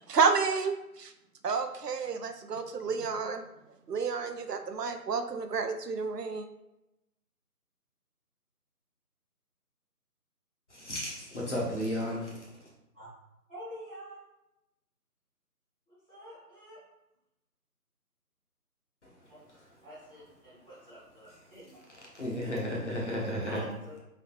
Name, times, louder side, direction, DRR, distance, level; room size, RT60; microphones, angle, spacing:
voice 1, 0.1-1.1 1.4-3.4 3.9-6.5, right 5 dB, 90° right, 8 dB, 0.6 m, -30 dB
voice 2, 10.7-12.5 22.1-23.6, equal, 50° left, -4 dB, 1.2 m, -33 dB
voice 3, 13.5-14.2 15.9-16.8 19.3-21.8 22.7-22.8 23.4-24.0, equal, 5° right, -22 dB, 1.2 m, -48 dB
3.8 x 3.1 x 3.0 m, 0.90 s
figure-of-eight pair, 165°, 47 cm